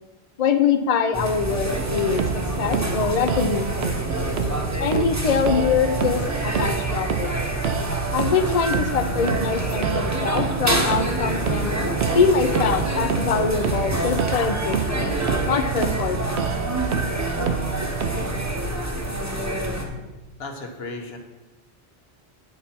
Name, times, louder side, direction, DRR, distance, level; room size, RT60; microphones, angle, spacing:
voice 1, 0.4-4.0 4.8-7.3 8.1-11.7 12.1-15.2 15.5-16.4, left 6 dB, 45° left, 7 dB, 0.6 m, -23 dB
sound 1, 1.1-19.9, right 1 dB, 15° right, 1.0 m, -27 dB
sound 2, 1.8-18.6, right 7 dB, 80° right, 1.0 m, -28 dB
voice 2, 20.4-21.2, left 2 dB, 70° left, 3 dB, 1.3 m, -35 dB
9.5 x 4.1 x 5.9 m, 1.1 s
omnidirectional pair, 1.1 m